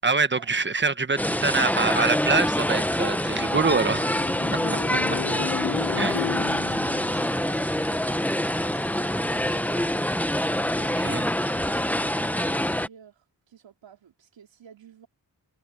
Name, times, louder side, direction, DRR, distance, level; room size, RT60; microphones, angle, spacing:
voice 1, 0.0-4.3 6.0-6.2 10.6-11.3, right 4 dB, 25° right, 1.4 m, -25 dB
sound 1, 1.2-12.9, left 1 dB, 5° left, 1.2 m, -25 dB
sound 2, 2.9-8.3, left 11 dB, 50° left, 0.4 m, -35 dB
sound 3, 5.8-10.9, right 4 dB, 50° right, 4.8 m, -52 dB
voice 2, 10.9-15.1, right 8 dB, 90° right, 3.8 m, -50 dB
cardioid pair, 55°, 44 cm